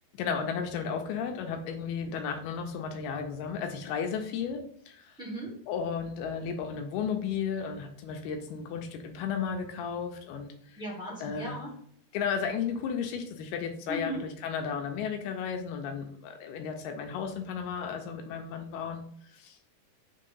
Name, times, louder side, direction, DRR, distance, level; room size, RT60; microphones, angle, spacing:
voice 1, 0.1-5.2 5.7-10.8 11.2-11.6 12.1-19.6, left 6 dB, 80° left, 5 dB, 2.6 m, -34 dB
voice 2, 5.2-5.5 10.8-11.7 13.9-14.2, equal, 5° right, -5 dB, 0.8 m, -37 dB
6.6 x 3.3 x 5.4 m, 0.63 s
omnidirectional pair, 4.5 m